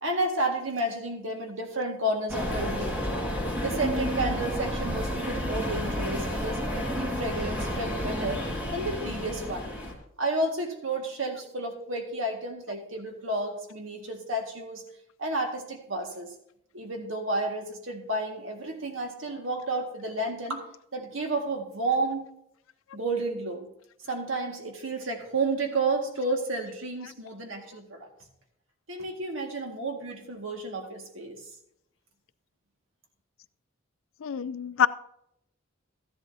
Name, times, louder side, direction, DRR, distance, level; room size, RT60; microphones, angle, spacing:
voice 1, 0.0-3.0 3.6-8.4 8.7-9.7 10.2-14.8 15.2-16.3 16.7-20.6 20.9-22.2 22.9-23.7 24.1-28.1 28.9-31.4, right 2 dB, 80° right, 3 dB, 1.8 m, -31 dB
sound 1, 2.3-9.9, equal, 10° right, 1.8 m, -31 dB
voice 2, 34.2-34.9, left 8 dB, 90° left, 15 dB, 0.4 m, -25 dB
13.0 x 11.0 x 2.7 m, 0.77 s
head